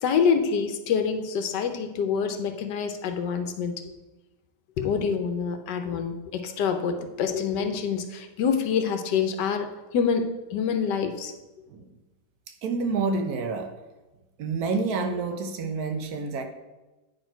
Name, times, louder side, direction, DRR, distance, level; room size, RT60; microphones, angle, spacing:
voice 1, 0.0-3.8 4.8-9.7 9.9-11.3, left 6 dB, 80° left, 7 dB, 1.4 m, -26 dB
voice 2, 12.6-13.7 14.4-16.4, right 4 dB, 65° right, 6 dB, 1.1 m, -28 dB
9.1 x 4.5 x 4.5 m, 1.1 s
omnidirectional pair, 1.8 m